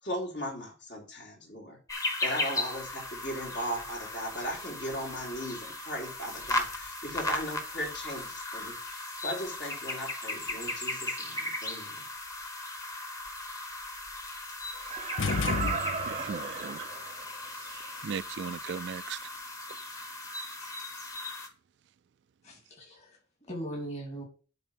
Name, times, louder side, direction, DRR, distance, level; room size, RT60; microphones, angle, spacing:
voice 1, 0.0-12.1, equal, 65° left, 3.6 m, -38 dB
sound 1, 1.9-21.5, left 2 dB, 15° left, 1.1 m, -37 dB
Laughter, 14.7-17.4 17.8-17.9, right 5 dB, 35° right, 0.7 m, -36 dB
sound 2, 15.2-16.4, left 4 dB, 90° left, 0.5 m, -31 dB
voice 2, 16.1-16.9 18.0-19.2, right 7 dB, 65° right, 0.3 m, -37 dB
voice 3, 22.4-24.2, right 1 dB, 35° left, 2.6 m, -40 dB
9.1 x 3.7 x 5.9 m
head